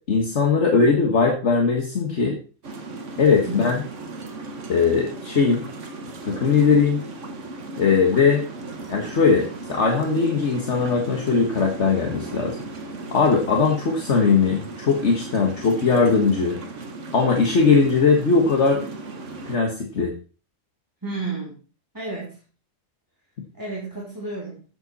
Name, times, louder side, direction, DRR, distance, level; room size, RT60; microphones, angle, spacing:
voice 1, 0.1-2.4 3.2-3.8 4.7-5.6 6.2-7.0 7.8-8.4 8.9-12.6 13.1-16.6 17.1-18.8 19.4-20.1, left 5 dB, 60° left, 1 dB, 1.7 m, -19 dB
sound 1, 2.6-19.6, right 3 dB, 60° right, 1.7 m, -36 dB
voice 2, 3.5-3.9 21.0-21.6 21.9-22.4 23.5-24.6, right 3 dB, 15° right, -4 dB, 2.9 m, -32 dB
11.0 x 8.0 x 4.2 m, 0.36 s
omnidirectional pair, 1.4 m